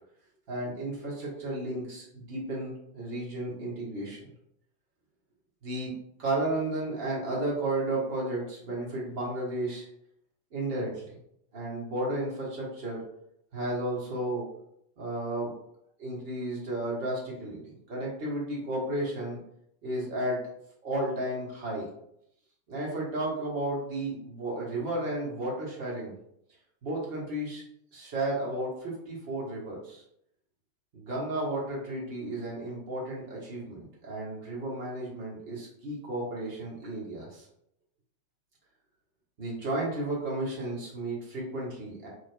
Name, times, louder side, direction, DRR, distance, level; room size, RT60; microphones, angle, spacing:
voice 1, 0.5-4.2 5.6-5.9 6.2-9.9 10.5-11.2 11.5-13.0 13.5-14.5 15.0-15.5 16.0-19.4 19.8-20.4 20.8-21.9 22.7-26.1 26.8-27.6 27.9-30.0 30.9-37.5 39.4-42.1, right 1 dB, 45° right, -4 dB, 1.0 m, -33 dB
2.7 x 2.1 x 2.3 m, 0.74 s
figure-of-eight pair, 90°, 0 cm